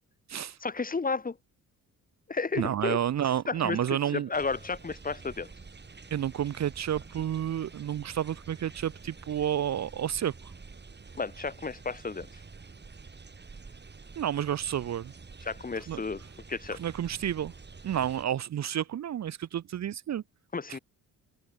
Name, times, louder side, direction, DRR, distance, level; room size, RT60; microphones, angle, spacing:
voice 1, 0.6-1.4 2.3-3.0 3.5-5.5 11.1-12.4 15.4-16.2 16.5-16.8 20.5-20.8, left 4 dB, 25° left, 1.5 m, -32 dB
voice 2, 2.6-4.3 6.1-10.3 14.2-15.1 15.9-16.0 16.8-17.5 17.8-20.2 20.7-20.8, right 10 dB, 50° right, 0.8 m, -30 dB
sound 1, 4.3-18.2, right 4 dB, 30° right, 6.5 m, -48 dB
open air
cardioid pair, 90°, 35 cm